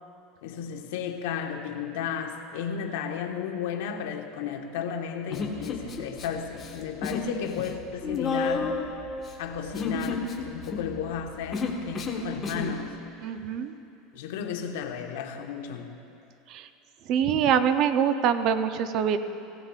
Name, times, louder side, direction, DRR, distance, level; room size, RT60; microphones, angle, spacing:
voice 1, 0.4-8.8 9.4-13.0 14.1-15.9, left 7 dB, 80° left, 4 dB, 1.0 m, -34 dB
Human voice, 5.3-6.3 6.5-7.3 7.6-12.8, left 4 dB, 25° left, 1.4 m, -31 dB
voice 2, 13.2-13.7 16.5-16.7 17.1-19.2, right 8 dB, 50° right, 10 dB, 0.6 m, -24 dB
17.5 x 17.0 x 2.4 m, 2.9 s
supercardioid pair, 135°, 0 cm